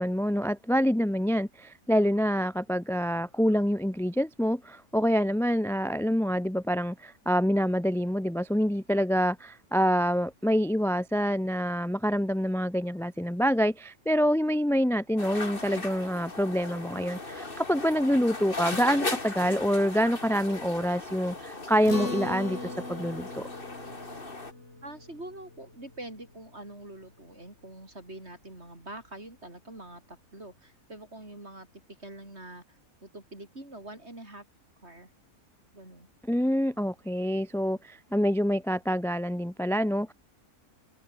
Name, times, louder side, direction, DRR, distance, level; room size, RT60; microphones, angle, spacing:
voice 1, 0.0-23.4 36.3-40.1, equal, ahead, 0.7 m, -26 dB
sound 1, 15.2-24.5, left 3 dB, 40° left, 3.1 m, -38 dB
Acoustic guitar, 21.9-26.6, left 2 dB, 55° left, 5.8 m, -39 dB
voice 2, 24.8-31.7 32.0-34.5 34.8-35.1 35.7-36.1, right 1 dB, 45° right, 7.1 m, -45 dB
open air
omnidirectional pair, 1.5 m